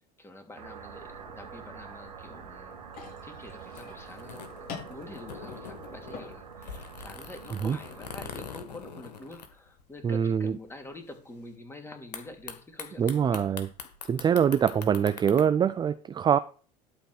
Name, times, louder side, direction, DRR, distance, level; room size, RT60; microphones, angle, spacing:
voice 1, 0.2-2.8 3.2-13.5, left 1 dB, 10° left, 3.0 m, -46 dB
sound 1, 0.6-8.3, right 6 dB, 85° right, 1.5 m, -46 dB
sound 2, 2.1-10.1 10.4-10.5 10.7-11.1 12.1-15.4, left 6 dB, 85° left, 1.7 m, -44 dB
sound 3, 2.9-10.9, left 5 dB, 45° left, 4.9 m, -49 dB
voice 2, 10.0-10.5 13.0-13.7 14.1-16.4, right 8 dB, 20° right, 0.4 m, -24 dB
11.5 x 4.4 x 6.4 m
hypercardioid pair, 80°, 20 cm